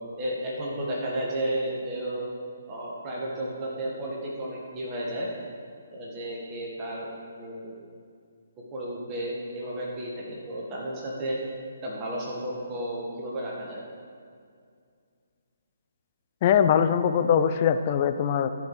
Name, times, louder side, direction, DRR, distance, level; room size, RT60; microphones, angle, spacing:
voice 1, 0.2-2.3 2.7-5.3 5.9-7.1 7.4-7.8 8.7-11.4 11.8-13.8, right 1 dB, 25° right, -4 dB, 1.8 m, -32 dB
voice 2, 16.4-18.5, left 8 dB, 35° left, 9 dB, 0.5 m, -22 dB
13.0 x 5.2 x 4.8 m, 2.2 s
figure-of-eight pair, 135°, 0 cm